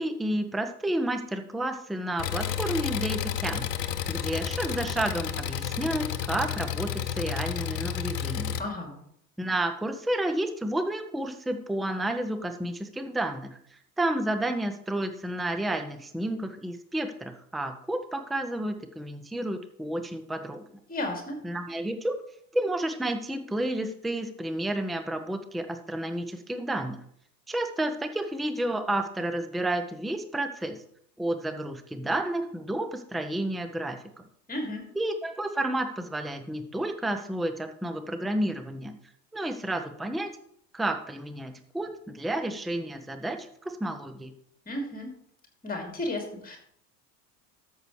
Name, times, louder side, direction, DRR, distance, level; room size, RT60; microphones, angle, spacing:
voice 1, 0.0-8.6 9.4-13.6 14.0-20.6 21.4-22.2 22.5-27.0 27.5-30.8 31.2-34.0 34.9-39.0 39.3-40.3 40.7-44.3, right 1 dB, ahead, 8 dB, 0.5 m, -31 dB
Engine, 2.2-8.6, left 9 dB, 75° left, 0.8 m, -31 dB
voice 2, 8.6-8.9 20.9-21.4 34.5-34.8 44.7-45.1 45.6-46.6, left 1 dB, 15° left, 2 dB, 2.6 m, -33 dB
13.0 x 7.0 x 3.2 m, 0.67 s
figure-of-eight pair, 70°, 49 cm